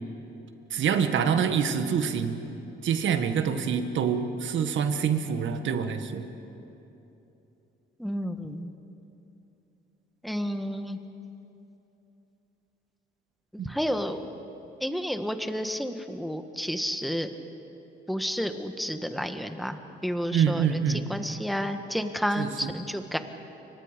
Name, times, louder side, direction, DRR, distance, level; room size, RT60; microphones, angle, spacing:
voice 1, 0.7-2.4 2.8-6.2 13.6-13.7 20.3-21.1 22.4-22.7, right 7 dB, 70° right, 7 dB, 1.8 m, -26 dB
voice 2, 8.0-8.7 10.2-11.0 13.6-14.3 14.8-17.3 18.1-20.8 21.1-23.2, equal, ahead, 7 dB, 1.6 m, -31 dB
29.5 x 24.5 x 5.3 m, 2.9 s
cardioid pair, 90°, 20 cm